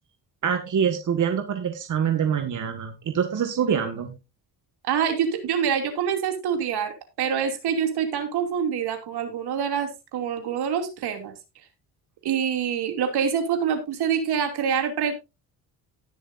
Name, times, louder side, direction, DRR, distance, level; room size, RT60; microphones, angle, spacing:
voice 1, 0.4-4.1, right 7 dB, 50° right, 5 dB, 1.8 m, -25 dB
voice 2, 4.9-11.3 12.2-15.2, right 7 dB, 75° right, 6 dB, 2.8 m, -26 dB
18.5 x 6.6 x 2.6 m, 0.27 s
cardioid pair, 100°, 40 cm